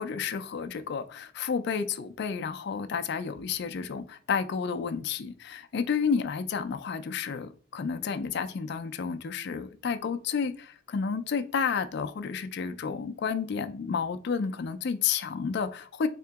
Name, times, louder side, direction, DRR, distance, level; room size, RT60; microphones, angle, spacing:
voice 1, 0.0-16.1, left 6 dB, 55° left, 0.3 m, -31 dB
3.6 x 2.8 x 3.4 m
head